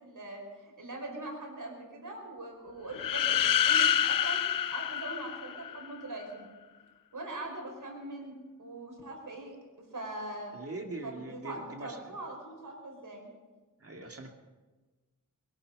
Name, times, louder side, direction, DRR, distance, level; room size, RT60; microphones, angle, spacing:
voice 1, 0.0-4.4 4.7-6.5 7.1-10.6 11.0-13.3, right 2 dB, 70° right, 1 dB, 5.1 m, -42 dB
sound 1, 2.9-5.9, left 9 dB, 80° left, 0.5 m, -27 dB
voice 2, 10.5-12.2 13.8-14.3, right 2 dB, 45° right, 2 dB, 2.3 m, -42 dB
22.0 x 12.0 x 5.4 m, 1.3 s
wide cardioid pair, 85°, 33 cm